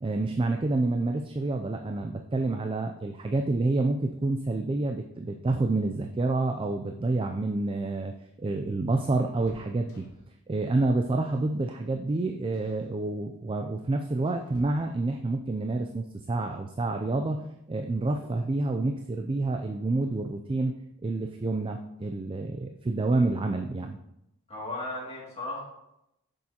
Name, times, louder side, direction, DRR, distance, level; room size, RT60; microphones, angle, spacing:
voice 1, 0.0-10.1 10.5-20.7 21.0-24.0, right 2 dB, 25° right, 4 dB, 0.3 m, -28 dB
sound 1, 7.8-10.4 11.2-11.6 11.9-12.1 12.5-12.9 13.7-15.2 17.0-17.1 17.4-17.5 18.7-19.1 19.5-19.6 19.9-20.1, equal, 65° left, 2.2 m, -55 dB
voice 2, 24.5-25.6, left 2 dB, 30° left, -5 dB, 2.3 m, -35 dB
8.3 x 6.5 x 2.9 m, 0.85 s
head